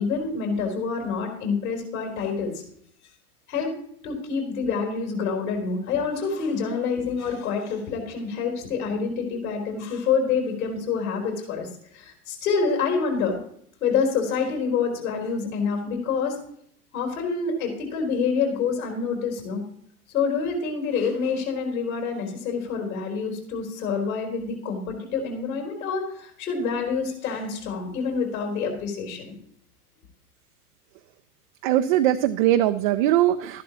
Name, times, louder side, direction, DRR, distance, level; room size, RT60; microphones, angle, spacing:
voice 1, 0.0-2.5 3.5-3.7 4.0-13.4 13.8-16.4 16.9-19.6 20.1-29.3, left 5 dB, 60° left, 1 dB, 4.0 m, -27 dB
voice 2, 31.6-33.6, right 13 dB, 35° right, 8 dB, 0.4 m, -21 dB
12.5 x 11.0 x 3.0 m, 0.65 s
figure-of-eight pair, 90°, 47 cm